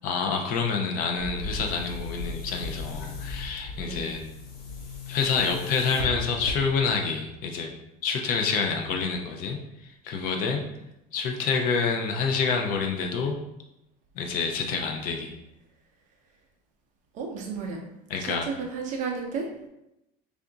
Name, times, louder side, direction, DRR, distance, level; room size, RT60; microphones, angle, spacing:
voice 1, 0.0-4.3 5.1-7.7 8.0-10.6 11.1-13.4 14.2-15.3 18.1-18.5, left 5 dB, 45° left, 3 dB, 0.5 m, -27 dB
Boom, 1.2-7.0, left 2 dB, 85° left, 0.9 m, -37 dB
voice 2, 17.1-17.8 18.2-19.5, right 5 dB, 40° right, 1 dB, 0.6 m, -33 dB
3.4 x 2.5 x 3.8 m, 0.89 s
cardioid pair, 165°, 21 cm